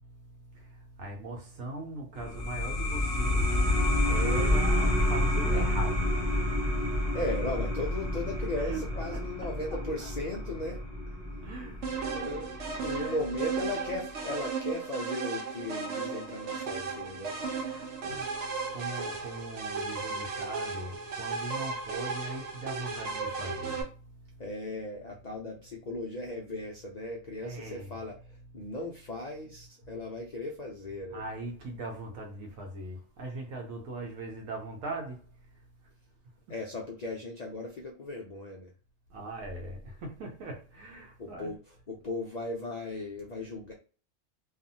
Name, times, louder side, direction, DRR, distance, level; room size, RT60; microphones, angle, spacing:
voice 1, 0.5-6.1 6.4-6.6 8.5-8.8 9.1-10.1 11.4-12.4 12.7-13.2 17.5-23.9 27.4-28.0 31.1-35.2 39.1-41.6, right 2 dB, 85° right, 1.1 m, -40 dB
sound 1, 2.1-13.3, left 1 dB, ahead, 1.2 m, -29 dB
voice 2, 6.8-10.8 12.1-12.5 12.8-17.5 24.4-31.3 36.5-38.7 41.2-41.6 41.9-43.7, left 2 dB, 80° left, 0.3 m, -37 dB
sound 2, 11.8-23.8, right 4 dB, 65° right, 1.0 m, -35 dB
2.6 x 2.4 x 2.6 m
omnidirectional pair, 1.4 m